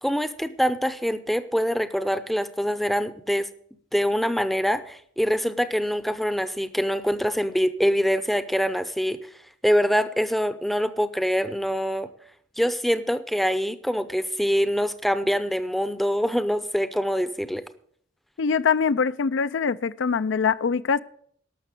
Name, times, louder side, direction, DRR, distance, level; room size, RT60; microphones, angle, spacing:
voice 1, 0.0-3.5 3.9-9.2 9.6-12.1 12.6-17.6, equal, ahead, 0.6 m, -24 dB
voice 2, 18.4-21.0, left 6 dB, 75° left, 0.4 m, -23 dB
12.0 x 6.7 x 8.2 m
head